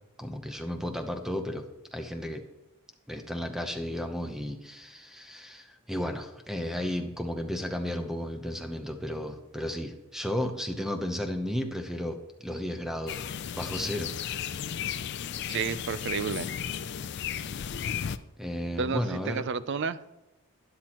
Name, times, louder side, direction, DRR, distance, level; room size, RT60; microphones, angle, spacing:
voice 1, 0.2-1.6 1.9-2.4 3.1-13.3 13.6-14.5 17.9-18.0 18.4-19.4, equal, ahead, 5 dB, 0.8 m, -33 dB
sound 1, 13.1-18.2, left 8 dB, 50° left, 0.4 m, -34 dB
voice 2, 15.5-16.5 18.8-20.0, right 5 dB, 55° right, 15 dB, 0.4 m, -31 dB
12.0 x 10.5 x 3.0 m, 0.98 s
head